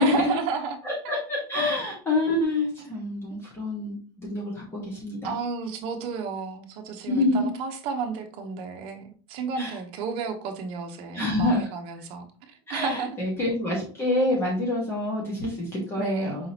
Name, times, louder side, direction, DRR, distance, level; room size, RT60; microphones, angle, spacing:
voice 1, 0.0-0.8 5.2-13.2 16.0-16.4, right 5 dB, 50° right, 4 dB, 1.0 m, -32 dB
voice 2, 0.8-5.4 7.1-7.5 9.6-9.8 11.1-11.6 12.7-16.5, left 2 dB, 20° left, -3 dB, 1.5 m, -27 dB
4.9 x 3.7 x 2.9 m, 0.41 s
supercardioid pair, 155°, 13 cm